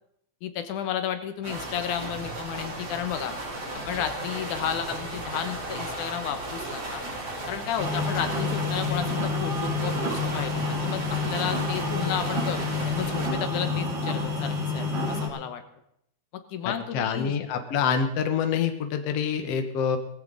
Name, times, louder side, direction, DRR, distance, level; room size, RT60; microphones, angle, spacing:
voice 1, 0.4-3.4 3.9-7.0 7.5-15.6 16.3-17.4, left 9 dB, 85° left, 9 dB, 2.6 m, -32 dB
sound 1, 1.4-13.3, right 2 dB, 60° right, 5.6 m, -35 dB
sound 2, 7.8-15.3, left 3 dB, 80° right, 4.5 m, -28 dB
voice 2, 16.7-20.0, left 7 dB, 60° left, 7 dB, 2.1 m, -26 dB
18.5 x 15.5 x 4.0 m, 0.74 s
omnidirectional pair, 3.5 m